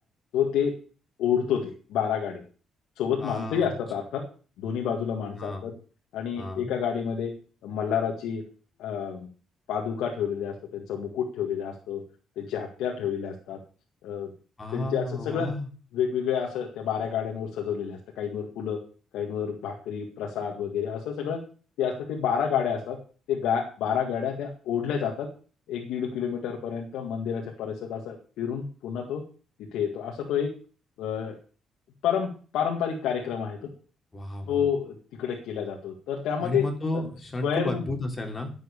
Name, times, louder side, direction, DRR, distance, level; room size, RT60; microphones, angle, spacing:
voice 1, 0.3-0.7 1.2-2.4 3.0-4.2 4.6-5.7 6.1-7.3 7.6-8.4 8.8-9.3 9.7-12.0 12.4-13.6 14.0-14.3 14.7-15.5 15.9-18.8 19.1-21.4 21.8-23.0 23.3-25.3 25.7-29.2 29.7-30.5 31.0-31.4 32.0-33.7 34.5-36.6 36.9-37.1 37.4-37.8, left 8 dB, 90° left, 1 dB, 1.9 m, -29 dB
voice 2, 3.2-3.7 5.3-5.7 6.4-6.7 14.6-15.7 34.1-34.6 36.4-38.5, left 2 dB, 30° left, 3 dB, 3.3 m, -32 dB
11.0 x 7.8 x 6.8 m, 0.40 s
cardioid pair, 90°, 0 cm